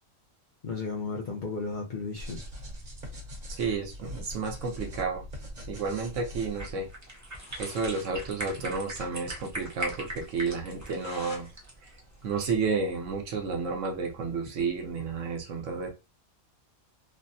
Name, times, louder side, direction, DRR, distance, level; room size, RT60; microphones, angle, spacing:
voice 1, 0.6-2.4, left 4 dB, 45° left, -2 dB, 0.7 m, -34 dB
sound 1, 2.1-7.0, left 1 dB, 40° right, 1.0 m, -42 dB
voice 2, 3.5-5.2 5.7-6.9 7.6-11.5 12.2-15.9, right 4 dB, 70° right, 3 dB, 1.1 m, -31 dB
sound 2, 6.6-12.6, equal, 15° right, 0.6 m, -40 dB
sound 3, 7.0-7.1 7.3-8.1 8.4-8.5 8.8-8.9 9.3-9.4 9.8-9.9 10.5-11.5 11.8-13.2, left 3 dB, 75° left, 1.5 m, -47 dB
3.4 x 2.1 x 2.6 m, 0.28 s
omnidirectional pair, 1.4 m